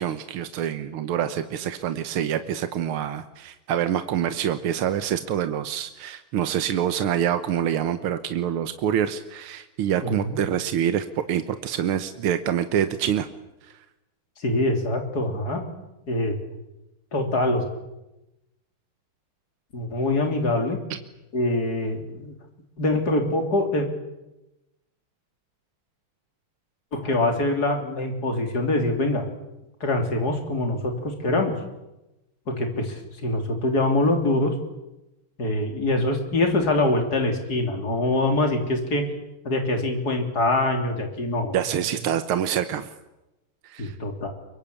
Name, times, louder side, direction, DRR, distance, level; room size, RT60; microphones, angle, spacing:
voice 1, 0.0-13.3 41.5-42.9 43.6-44.0, right 9 dB, 80° right, 10 dB, 1.9 m, -26 dB
voice 2, 10.0-10.4 14.4-15.6 16.1-16.4 17.1-17.6 19.7-20.8 21.3-22.3 22.8-23.9 26.9-29.2 29.8-31.6 32.5-34.5 35.4-39.1 39.4-41.6 43.8-44.3, left 2 dB, 45° left, 4 dB, 3.9 m, -24 dB
23.5 x 23.5 x 8.5 m, 0.96 s
omnidirectional pair, 2.3 m